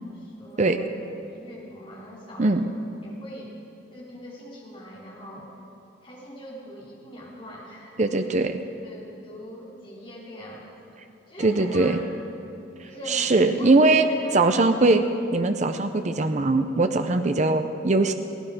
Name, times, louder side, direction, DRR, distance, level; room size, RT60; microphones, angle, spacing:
voice 1, 0.0-0.9 1.3-2.8 3.0-3.5 3.9-5.5 6.0-8.3 8.8-11.0 11.3-12.0 12.8-14.7, equal, 25° left, -6 dB, 3.7 m, -42 dB
voice 2, 8.0-8.6 11.4-12.0 13.1-14.0 14.3-15.0 15.3-18.1, right 2 dB, 35° right, 8 dB, 0.6 m, -21 dB
17.0 x 16.5 x 5.0 m, 2.8 s
head